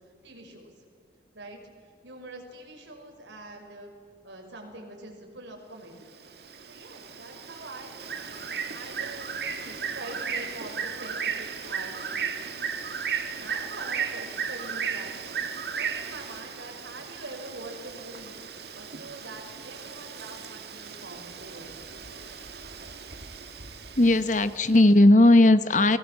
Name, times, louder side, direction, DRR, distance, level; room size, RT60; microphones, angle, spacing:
voice 1, 0.2-0.7 1.3-3.9 4.2-5.9 6.7-8.2 8.7-12.2 13.4-15.4 15.7-18.4 18.7-22.0, right 2 dB, 85° right, 2 dB, 6.0 m, -44 dB
Bird, 6.0-24.8, right 6 dB, 60° right, 2.1 m, -36 dB
voice 2, 24.0-26.0, left 1 dB, 40° left, 12 dB, 1.0 m, -17 dB
29.5 x 21.5 x 7.7 m, 2.2 s
head